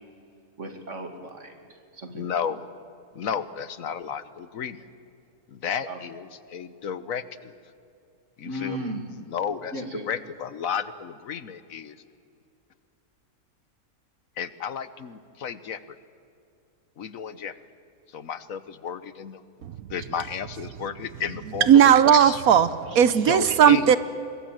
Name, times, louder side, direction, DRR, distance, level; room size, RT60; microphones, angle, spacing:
voice 1, 0.6-2.3 5.8-6.0 8.4-9.1 9.7-10.1, equal, 55° right, 6 dB, 2.7 m, -35 dB
voice 2, 2.1-2.6 3.1-4.8 5.5-7.5 8.4-8.9 9.3-12.0 14.4-16.0 17.0-17.5 18.1-19.4 19.9-22.4 23.3-23.9, left 7 dB, 70° left, 14 dB, 1.3 m, -33 dB
voice 3, 21.7-24.0, right 9 dB, 75° right, 14 dB, 1.2 m, -16 dB
24.5 x 22.0 x 7.7 m, 2.6 s
omnidirectional pair, 1.5 m